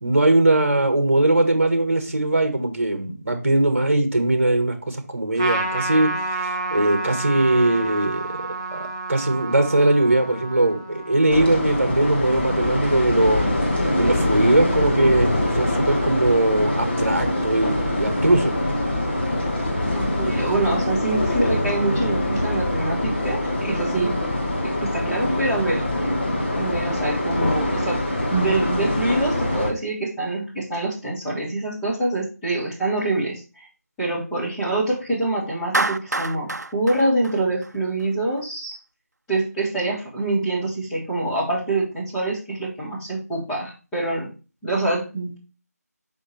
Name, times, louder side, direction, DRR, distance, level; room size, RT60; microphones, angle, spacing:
voice 1, 0.0-6.1 6.4-13.5 14.0-18.5, right 2 dB, 50° right, 6 dB, 1.5 m, -20 dB
Trumpet, 5.4-12.1, right 3 dB, 20° right, 0.9 m, -30 dB
sound 1, 11.3-29.7, left 1 dB, 35° left, 1.4 m, -24 dB
voice 2, 19.9-24.2 24.6-25.8 26.5-28.0 28.3-33.7 34.0-38.7 39.3-44.3 44.6-45.4, right 2 dB, 5° left, -10 dB, 1.5 m, -25 dB
Clapping, 35.7-38.0, right 2 dB, 75° right, 0.5 m, -26 dB
5.7 x 5.2 x 3.2 m, 0.32 s
figure-of-eight pair, 165°, 9 cm